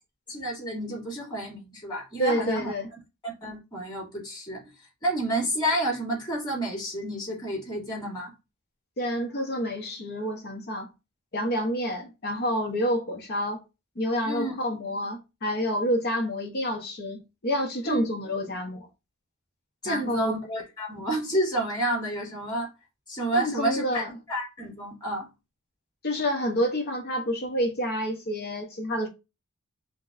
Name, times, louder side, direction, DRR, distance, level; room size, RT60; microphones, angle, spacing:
voice 1, 0.3-2.7 3.2-4.6 5.0-8.3 14.2-14.5 17.8-18.0 19.8-22.7 23.1-25.3, right 1 dB, 20° left, 2.4 m, -30 dB
voice 2, 2.2-2.9 9.0-10.9 11.3-13.6 14.0-18.9 19.8-20.3 23.3-24.2 26.0-29.1, equal, 45° left, 0.8 m, -28 dB
6.2 x 2.1 x 2.5 m
head